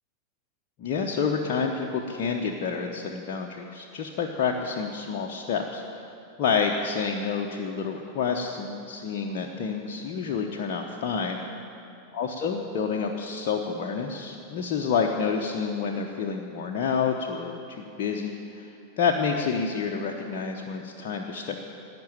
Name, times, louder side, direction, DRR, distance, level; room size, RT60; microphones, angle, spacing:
voice 1, 0.8-6.0 6.4-11.4 12.1-18.7 19.0-21.6, left 5 dB, 45° left, 0 dB, 0.9 m, -28 dB
16.0 x 6.1 x 8.9 m, 2.8 s
figure-of-eight pair, 90°, 0 cm